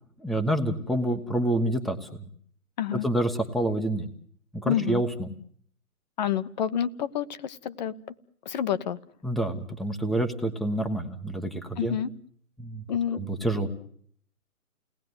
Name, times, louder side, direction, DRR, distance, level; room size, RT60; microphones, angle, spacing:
voice 1, 0.2-2.1 2.9-4.1 4.6-5.3 9.2-12.0 12.6-12.8 13.1-13.7, right 1 dB, ahead, 6 dB, 1.1 m, -27 dB
voice 2, 4.7-5.0 6.2-7.9 8.5-9.0 11.8-12.1 12.9-13.2, left 9 dB, 30° left, 14 dB, 1.0 m, -28 dB
29.5 x 19.0 x 9.6 m, 0.65 s
hypercardioid pair, 145°, 45 cm